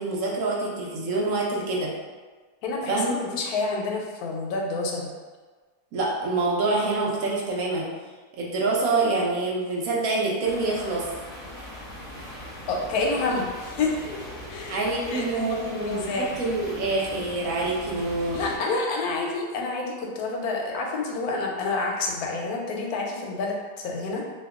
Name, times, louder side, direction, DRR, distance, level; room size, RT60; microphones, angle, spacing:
voice 1, 0.0-1.9 2.9-3.2 5.9-7.9 8.4-11.1 14.7-18.4, right 3 dB, 70° right, -3 dB, 1.0 m, -26 dB
voice 2, 2.6-5.1 12.7-14.2 14.5-14.8 15.1-16.4 17.1-17.2 18.3-24.2, left 3 dB, 80° left, 0 dB, 1.1 m, -28 dB
sound 1, 10.4-18.6, equal, 30° left, 0.7 m, -40 dB
2.8 x 2.2 x 3.5 m, 1.4 s
omnidirectional pair, 1.6 m